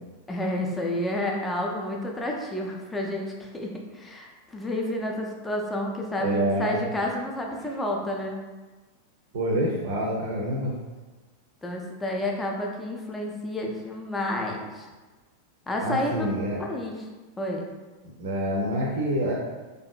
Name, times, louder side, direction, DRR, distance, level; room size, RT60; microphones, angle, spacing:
voice 1, 0.3-8.4 11.6-14.9 15.7-16.3 16.6-17.1 17.4-17.6, left 1 dB, 10° left, 0 dB, 0.4 m, -30 dB
voice 2, 6.2-6.8 9.3-10.8 15.8-16.6 18.2-19.3, right 1 dB, 55° right, -4 dB, 0.5 m, -27 dB
2.7 x 2.4 x 2.2 m, 1.2 s
figure-of-eight pair, 90°, 0 cm